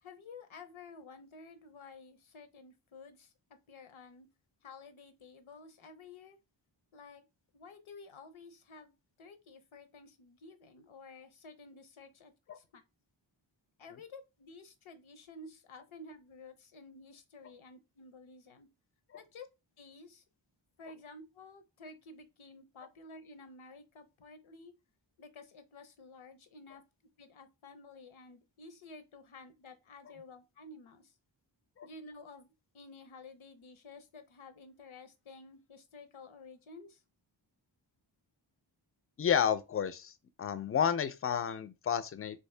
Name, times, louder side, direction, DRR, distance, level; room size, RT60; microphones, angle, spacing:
voice 1, 0.0-3.3 3.7-4.3 4.6-6.4 6.9-7.2 7.5-8.9 9.2-12.8 13.8-18.7 19.1-19.5 19.8-20.2 20.8-24.7 25.2-26.8 27.2-31.0 31.8-32.5 32.7-37.0, left 3 dB, 80° left, 0.7 m, -52 dB
voice 2, 39.2-40.1 40.4-42.4, left 8 dB, 30° left, 0.4 m, -31 dB
3.1 x 2.7 x 3.2 m
wide cardioid pair, 75°, 47 cm